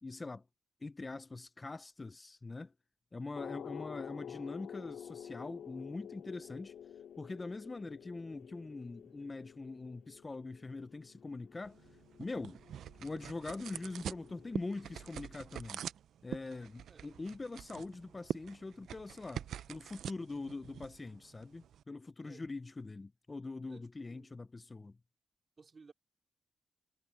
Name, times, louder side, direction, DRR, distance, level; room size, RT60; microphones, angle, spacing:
voice 1, 0.0-0.4 0.8-2.7 3.1-6.7 7.2-11.9 12.2-12.6 13.0-15.8 16.2-25.0, left 3 dB, 20° left, 0.4 m, -43 dB
sound 1, 3.3-15.2, left 8 dB, 80° left, 2.1 m, -51 dB
sound 2, 11.6-21.8, right 9 dB, 80° right, 0.4 m, -45 dB
voice 2, 23.7-24.3 25.6-25.9, right 4 dB, 35° right, 3.8 m, -58 dB
wide cardioid pair, 140°, 0 cm